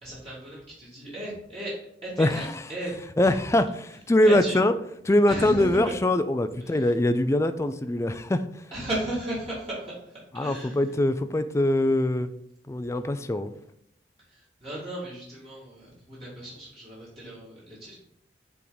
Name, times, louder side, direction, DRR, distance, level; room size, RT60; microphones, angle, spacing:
voice 1, 0.0-1.7 2.0-3.0 3.2-3.4 4.2-4.6 5.3-5.9 6.6-6.9 8.7-11.0 14.3-18.0, right 1 dB, 30° right, -8 dB, 2.0 m, -35 dB
voice 2, 3.2-4.7 5.0-8.4 10.4-12.3 12.7-13.5, left 1 dB, 15° left, 10 dB, 0.3 m, -23 dB
8.4 x 3.6 x 3.9 m, 0.74 s
head